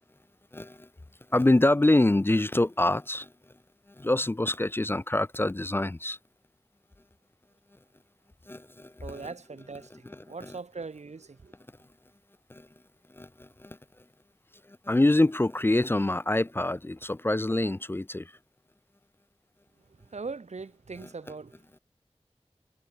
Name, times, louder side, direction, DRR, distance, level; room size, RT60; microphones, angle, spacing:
voice 1, 0.5-0.9 1.3-3.3 4.0-6.2 8.5-9.2 12.5-12.7 13.2-13.8 14.9-18.3, left 2 dB, 20° left, 0.3 m, -25 dB
voice 2, 9.0-11.5 19.9-21.8, right 4 dB, 85° right, 0.9 m, -41 dB
wide cardioid pair, 55°, 11 cm